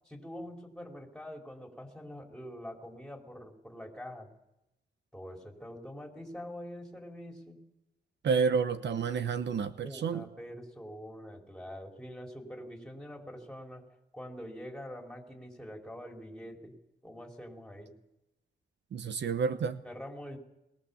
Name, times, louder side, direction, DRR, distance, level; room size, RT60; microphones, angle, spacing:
voice 1, 0.0-4.3 5.1-7.6 9.8-13.9 14.1-16.7 17.0-17.9 19.8-20.4, equal, 5° left, 1 dB, 4.2 m, -45 dB
voice 2, 8.2-10.2 18.9-19.8, right 5 dB, 75° right, 11 dB, 0.9 m, -30 dB
21.5 x 18.5 x 7.1 m, 0.91 s
cardioid pair, 75°, 19 cm